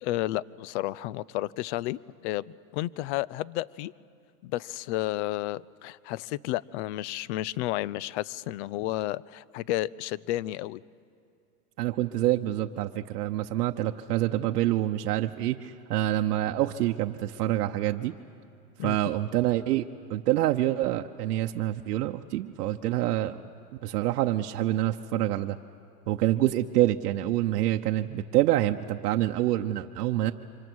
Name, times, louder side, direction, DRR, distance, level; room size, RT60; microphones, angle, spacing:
voice 1, 0.0-3.9 4.4-10.8 18.8-19.0, left 16 dB, 50° left, 23 dB, 0.5 m, -32 dB
voice 2, 11.8-18.1 18.8-19.8 20.1-23.3 23.8-25.6 26.1-30.3, right 14 dB, 80° right, 4 dB, 0.9 m, -26 dB
29.0 x 25.5 x 6.3 m, 2.6 s
supercardioid pair, 140°, 46 cm